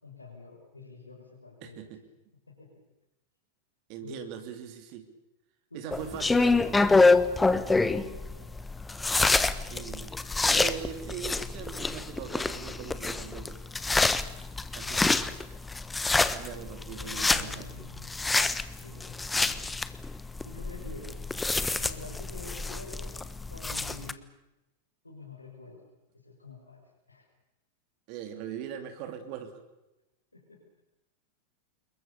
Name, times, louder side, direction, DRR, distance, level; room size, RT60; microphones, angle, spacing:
voice 1, 0.0-1.8 2.5-2.7 4.0-4.3 5.7-6.8 7.8-8.5 14.7-15.3 16.9-18.1 18.8-19.7 20.4-21.2 21.8-23.2 23.5-24.2 25.0-25.9 26.2-26.8 27.1-27.3 30.3-30.6, left 3 dB, 80° left, -2 dB, 5.8 m, -46 dB
voice 2, 1.6-2.0 3.9-5.1 5.7-7.2 9.7-13.6 14.7-15.3 16.3-17.7 28.1-29.6, right 9 dB, 45° right, 7 dB, 3.1 m, -41 dB
sound 1, 5.9-24.1, left 3 dB, 10° left, 1.3 m, -27 dB
28.0 x 22.5 x 7.0 m, 0.95 s
figure-of-eight pair, 90°, 0 cm